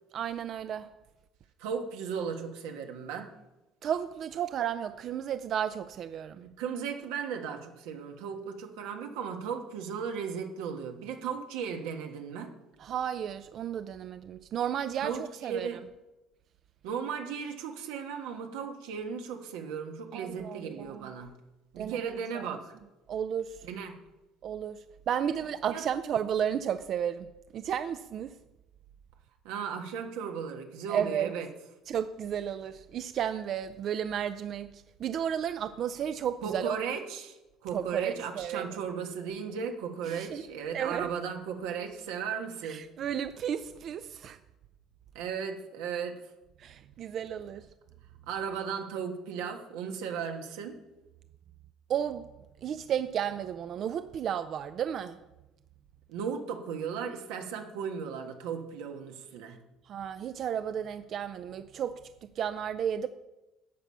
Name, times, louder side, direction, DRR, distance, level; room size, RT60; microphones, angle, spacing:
voice 1, 0.1-0.9 3.8-6.4 12.8-15.7 20.1-21.1 21.8-22.6 23.1-23.7 24.4-27.3 27.5-28.3 30.9-31.3 31.9-36.8 37.7-38.6 40.1-40.4 40.7-41.1 42.6-44.4 46.6-47.7 51.9-52.2 52.6-55.2 59.9-62.0 62.4-63.1, right 9 dB, 50° right, 0.4 m, -33 dB
voice 2, 1.6-3.3 6.4-12.5 15.0-15.8 16.8-21.3 21.7-22.6 23.6-24.0 25.7-25.8 29.4-31.5 36.4-37.4 37.6-42.8 45.1-46.2 48.3-50.8 56.1-59.6, right 7 dB, 90° right, 1.4 m, -36 dB
11.0 x 7.2 x 5.6 m
cardioid pair, 115°, 0 cm